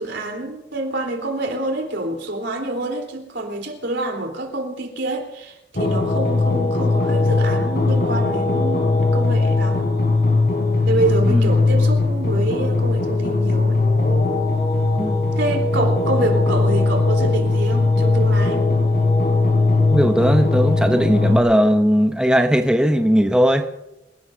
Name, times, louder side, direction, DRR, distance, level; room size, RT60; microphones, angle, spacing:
voice 1, 0.0-9.9 10.9-13.8 15.4-18.6, right 2 dB, 85° right, 2 dB, 3.8 m, -26 dB
sound 1, 5.8-21.4, left 3 dB, 55° left, 3.8 m, -19 dB
voice 2, 19.9-23.7, equal, 5° right, 6 dB, 0.7 m, -18 dB
27.0 x 18.0 x 2.7 m, 0.92 s
head